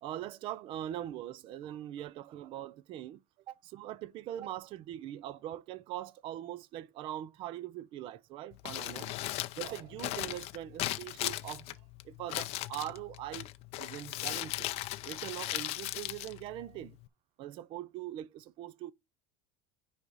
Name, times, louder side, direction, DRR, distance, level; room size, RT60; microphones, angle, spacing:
voice 1, 0.0-9.1 9.6-13.5 13.7-14.8 15.0-17.0 17.4-18.9, right 12 dB, 30° right, 0.4 m, -42 dB
Crumpling crinkling, 8.5-17.1, left 17 dB, 35° left, 0.5 m, -38 dB
9.8 x 4.9 x 4.0 m
cardioid pair, 180°, 17 cm